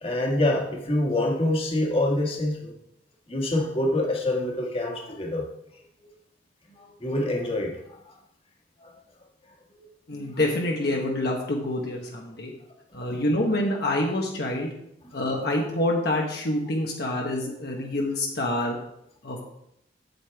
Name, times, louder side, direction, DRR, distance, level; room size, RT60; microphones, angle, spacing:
voice 1, 0.0-2.7 3.3-5.5 7.0-7.7 8.8-8.9, left 1 dB, 30° left, -1 dB, 1.6 m, -25 dB
voice 2, 10.1-12.5 12.9-14.7 15.1-18.8 19.2-19.4, left 1 dB, 60° left, -1 dB, 1.2 m, -26 dB
8.3 x 8.1 x 3.5 m, 0.77 s
head